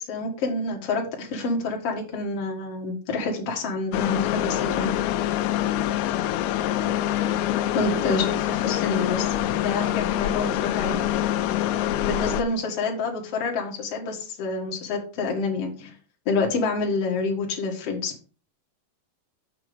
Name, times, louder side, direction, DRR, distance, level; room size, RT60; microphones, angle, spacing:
voice 1, 0.0-5.0 7.7-11.0 12.0-15.9 16.3-18.1, left 3 dB, 55° left, 0 dB, 1.8 m, -28 dB
sound 1, 3.9-12.4, left 12 dB, 90° left, 2.2 m, -25 dB
7.6 x 6.0 x 5.2 m, 0.38 s
omnidirectional pair, 5.2 m